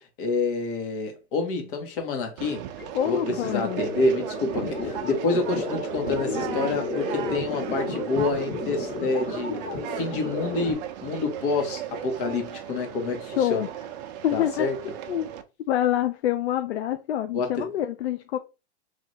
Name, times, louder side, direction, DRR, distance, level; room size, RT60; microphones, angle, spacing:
voice 1, 0.0-2.6 3.0-9.6 9.9-13.7 14.3-14.8 17.3-17.7, left 3 dB, 50° left, 1.4 m, -28 dB
Conversation, 2.4-15.4, right 10 dB, 40° right, 0.6 m, -36 dB
sound 1, 2.8-10.7, left 2 dB, 30° left, 1.6 m, -33 dB
voice 2, 2.9-3.8 13.3-13.7 14.2-14.7 15.1-15.3 15.7-18.4, left 11 dB, 75° left, 0.6 m, -26 dB
3.3 x 2.9 x 4.0 m
supercardioid pair, 150°, 33 cm